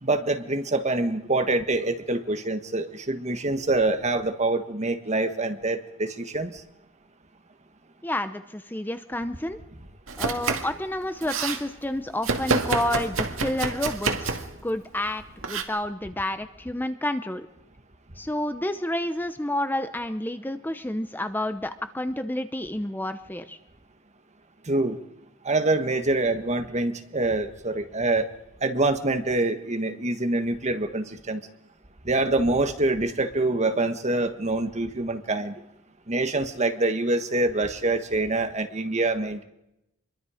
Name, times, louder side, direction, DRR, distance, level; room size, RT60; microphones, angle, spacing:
voice 1, 0.0-6.5 24.7-25.0 25.4-28.3 28.6-31.4 32.0-35.5 36.1-39.4, right 2 dB, 35° right, 8 dB, 1.6 m, -25 dB
voice 2, 8.0-9.6 10.2-17.5 18.2-23.6, left 1 dB, 10° left, 9 dB, 0.8 m, -30 dB
Domestic sounds home sounds, 10.1-10.8 11.0-11.6 12.2-14.5 15.4-15.6, right 4 dB, 80° right, 2.2 m, -27 dB
26.0 x 23.0 x 5.1 m, 0.85 s
head